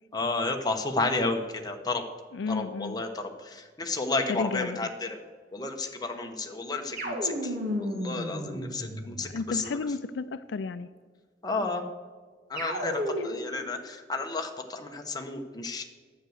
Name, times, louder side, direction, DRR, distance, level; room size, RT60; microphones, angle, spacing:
voice 1, 0.1-2.0 2.5-5.2 5.5-9.8 11.4-11.9 12.5-15.8, left 3 dB, 25° left, 4 dB, 1.1 m, -32 dB
voice 2, 2.3-2.9 4.3-4.8 9.3-10.9, left 4 dB, 75° left, 13 dB, 0.4 m, -32 dB
sound 1, 7.0-9.5 12.5-13.6, equal, 55° right, 1.9 m, -33 dB
10.0 x 8.0 x 6.5 m, 1.5 s
head